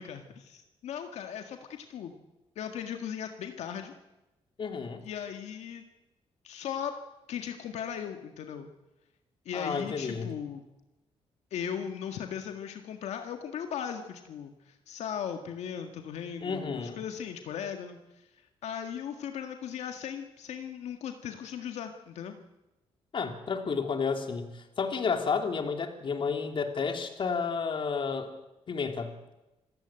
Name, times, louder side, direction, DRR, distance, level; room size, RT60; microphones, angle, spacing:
voice 1, 0.0-2.2 2.6-3.9 5.0-5.8 6.4-6.9 7.3-8.7 9.5-10.6 11.5-22.3, left 8 dB, 85° left, 6 dB, 1.9 m, -38 dB
voice 2, 4.6-5.0 9.5-10.3 16.4-17.0 23.1-28.3 28.7-29.1, left 5 dB, 50° left, 6 dB, 3.2 m, -31 dB
27.0 x 15.0 x 9.0 m, 1.0 s
cardioid pair, 100°, 11 cm